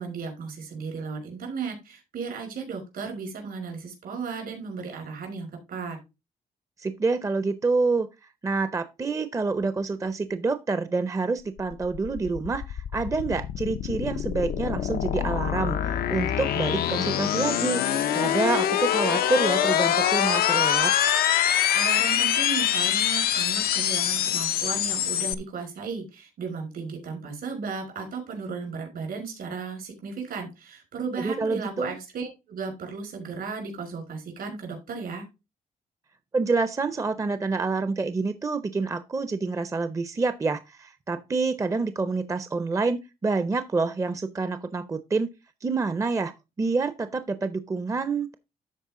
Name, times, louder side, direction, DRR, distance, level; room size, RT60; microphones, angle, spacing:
voice 1, 0.0-6.0 21.7-35.3, right 5 dB, 75° right, 5.2 m, -35 dB
voice 2, 6.8-8.1 8.4-17.8 18.1-20.9 31.2-32.0 36.3-45.3 45.6-46.3 46.6-48.3, right 4 dB, 20° right, 0.6 m, -27 dB
sound 1, 11.6-25.3, left 10 dB, 90° left, 0.6 m, -25 dB
13.0 x 4.5 x 3.7 m
cardioid pair, 130°, 15 cm